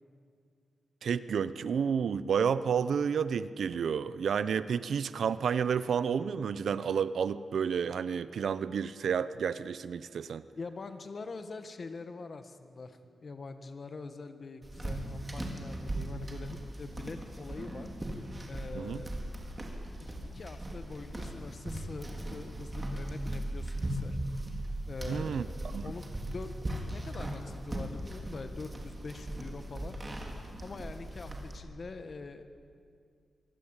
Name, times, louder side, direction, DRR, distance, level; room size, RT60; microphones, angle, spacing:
voice 1, 1.0-10.4 18.7-19.0 25.1-25.5 25.7-25.8, right 7 dB, 75° right, 15 dB, 0.8 m, -30 dB
voice 2, 10.6-17.9 18.5-19.1 20.0-24.2 24.9-26.5 26.9-30.0 30.6-32.4, left 3 dB, 40° left, 8 dB, 1.6 m, -44 dB
sound 1, 14.6-31.6, right 1 dB, 20° right, 3.7 m, -38 dB
24.5 x 23.0 x 9.0 m, 2.2 s
wide cardioid pair, 140°, 0 cm